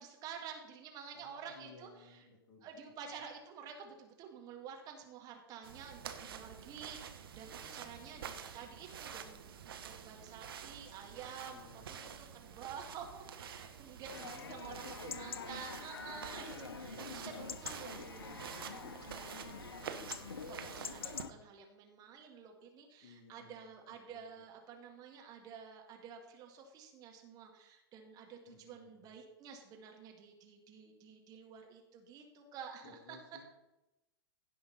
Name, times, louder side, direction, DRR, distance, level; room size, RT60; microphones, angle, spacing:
voice 1, 0.0-2.2 2.6-19.8 20.5-33.2, right 7 dB, 30° right, 2 dB, 1.8 m, -50 dB
voice 2, 1.1-3.2 7.4-8.3 11.4-12.4 14.2-15.1 16.5-17.3 23.0-24.4 28.5-29.1 32.8-33.4, left 4 dB, 30° left, -1 dB, 2.2 m, -60 dB
sound 1, 5.6-21.2, right 7 dB, 60° right, 1.1 m, -48 dB
Chatter / Livestock farm animals working animals / Chirp tweet, 14.1-21.3, left 5 dB, 65° left, 0.8 m, -46 dB
16.0 x 5.7 x 4.1 m, 0.94 s
figure-of-eight pair, 105°, 14 cm